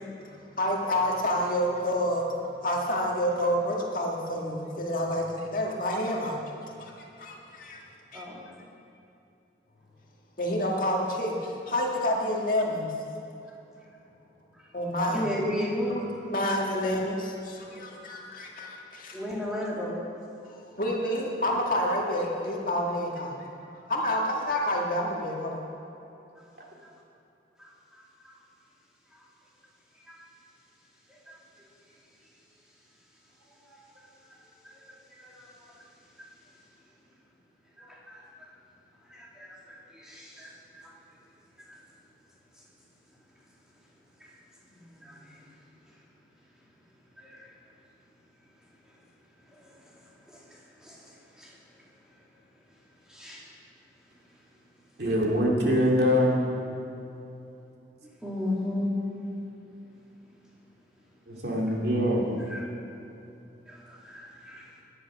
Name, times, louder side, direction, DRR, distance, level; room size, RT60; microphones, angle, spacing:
voice 1, 0.0-6.4 6.8-6.9 7.2-7.8 8.1-8.2 10.4-12.9 14.7-15.2 16.3-19.2 20.8-23.5 23.9-25.6, left 1 dB, 45° left, -1 dB, 2.0 m, -28 dB
voice 2, 8.1-8.4 14.5-14.7 15.1-16.2 19.1-20.0 27.6-28.3 29.1-29.3 30.1-30.3 31.1-31.6 33.5-35.9 36.2-36.6 37.8-38.5 39.1-40.9 41.6-41.8 44.2-44.4 44.7-45.5 45.8-46.0 47.2-47.7 48.8-49.0 49.5-52.2 53.1-53.5 58.0-58.9 62.4-62.7 63.7-64.8, left 1 dB, 5° right, -5 dB, 2.5 m, -37 dB
voice 3, 55.0-56.4 61.3-62.3, equal, 60° right, -2 dB, 2.7 m, -24 dB
17.5 x 10.0 x 6.1 m, 2.8 s
head